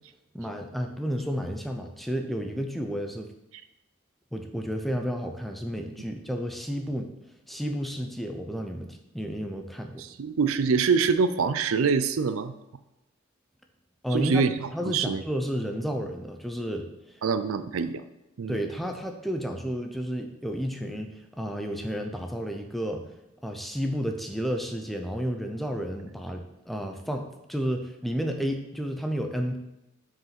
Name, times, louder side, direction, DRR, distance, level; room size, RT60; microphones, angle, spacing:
voice 1, 0.3-3.3 4.3-7.1 7.5-10.0 14.0-14.4 14.7-16.9 18.5-21.1 21.4-23.0 23.4-29.6, equal, ahead, 4 dB, 0.6 m, -31 dB
voice 2, 10.0-12.5 14.1-15.2 17.2-18.0 18.4-18.6, right 5 dB, 75° right, 12 dB, 0.5 m, -25 dB
6.3 x 4.9 x 5.8 m, 0.94 s
head